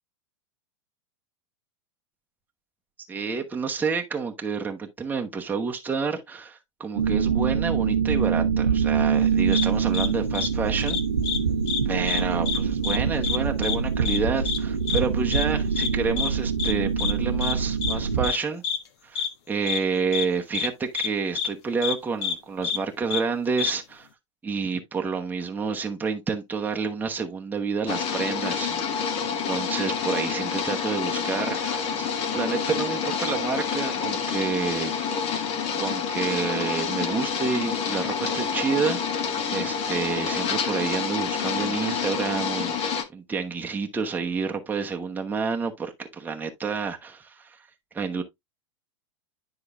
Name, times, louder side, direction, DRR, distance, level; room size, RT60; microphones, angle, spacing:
voice 1, 3.1-11.0 11.8-18.6 19.0-24.1 24.4-28.7 29.2-34.9 35.8-39.2 39.5-47.6 47.9-48.2, right 5 dB, 10° right, 1.0 m, -29 dB
sound 1, 7.0-18.3, right 6 dB, 90° right, 0.8 m, -25 dB
sound 2, 9.5-9.7 9.9-10.1 10.3-10.5 10.9-11.4 11.7-11.8 12.1-12.6 12.8-13.0 13.2-13.4 13.6-13.8 14.1-14.2 14.5-14.6 14.9-15.0 15.3-15.4 15.8-15.9 16.2-16.3 16.6-16.7 17.0-17.1 17.4-17.5 17.8-17.9 18.2-18.4 18.6-18.8 19.2-19.3 19.7-19.8 20.1-20.3 20.5-20.7 20.9-21.1 21.4-21.5 21.8-21.9 22.2-22.3 22.6-22.8 23.1-23.2 23.6-23.7, left 7 dB, 60° left, 1.3 m, -27 dB
sound 3, 27.9-43.0, left 6 dB, 40° left, 1.3 m, -28 dB
9.7 x 4.8 x 2.5 m
hypercardioid pair, 100°, 16 cm